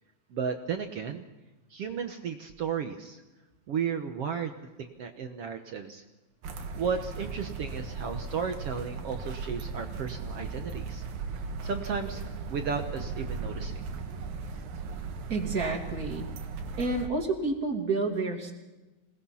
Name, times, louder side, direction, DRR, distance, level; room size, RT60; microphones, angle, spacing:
voice 1, 0.3-1.2 1.7-3.2 3.7-4.5 4.8-6.0 6.8-11.0 11.6-12.2 12.5-13.8, right 6 dB, 60° right, 6 dB, 1.7 m, -34 dB
sound 1, 6.4-17.1, right 4 dB, 85° right, 3.4 m, -37 dB
voice 2, 15.3-16.3 16.8-18.5, right 3 dB, 30° right, 3 dB, 2.7 m, -29 dB
26.5 x 20.0 x 5.8 m, 1.1 s
omnidirectional pair, 3.9 m